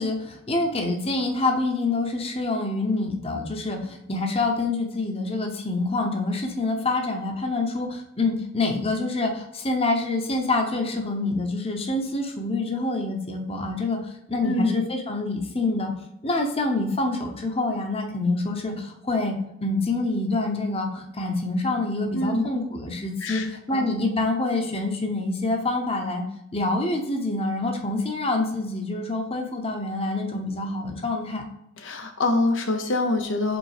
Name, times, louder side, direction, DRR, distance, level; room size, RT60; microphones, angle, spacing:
voice 1, 0.0-15.9 16.2-26.2 26.5-31.4, left 2 dB, 30° left, 3 dB, 0.9 m, -26 dB
voice 2, 14.4-14.8 22.1-22.5 23.2-23.8 31.8-33.6, left 2 dB, 70° left, 5 dB, 0.7 m, -25 dB
5.2 x 4.0 x 4.9 m, 0.81 s
head